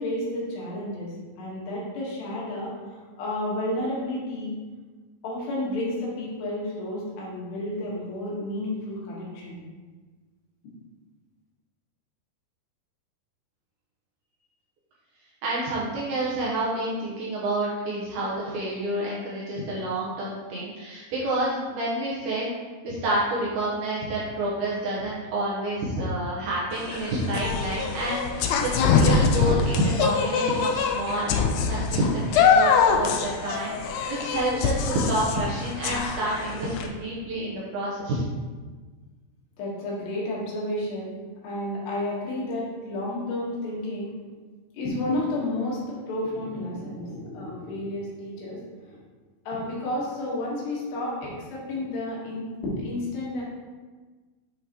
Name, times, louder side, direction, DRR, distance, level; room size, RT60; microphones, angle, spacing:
voice 1, 0.0-2.7 3.2-4.6 5.2-9.6 39.6-41.2 41.4-44.1 44.7-49.0 49.5-53.4, left 1 dB, 70° left, -5 dB, 3.5 m, -31 dB
voice 2, 15.4-22.5 22.8-31.3 31.7-33.8 34.1-38.2, right 1 dB, 70° right, -7 dB, 2.5 m, -28 dB
sound 1, 26.7-36.9, left 5 dB, 90° left, 2.2 m, -24 dB
8.0 x 5.7 x 3.0 m, 1.4 s
omnidirectional pair, 5.3 m